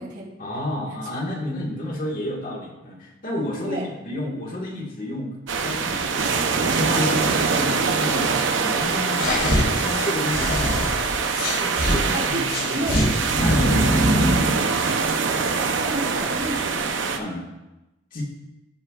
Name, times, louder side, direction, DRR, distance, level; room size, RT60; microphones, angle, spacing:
voice 1, 0.4-8.2 8.6-10.8 11.6-12.9 13.4-14.5 17.2-17.4 18.1-18.2, left 1 dB, 45° left, -2 dB, 1.7 m, -31 dB
sound 1, 5.5-17.2, right 5 dB, 85° right, 0.7 m, -24 dB
sound 2, 9.1-12.0 12.5-14.5, equal, 80° left, 3.3 m, -22 dB
voice 2, 12.1-13.0 15.5-17.0, right 1 dB, 50° right, -5 dB, 3.0 m, -31 dB
16.5 x 5.6 x 2.4 m, 1.0 s
head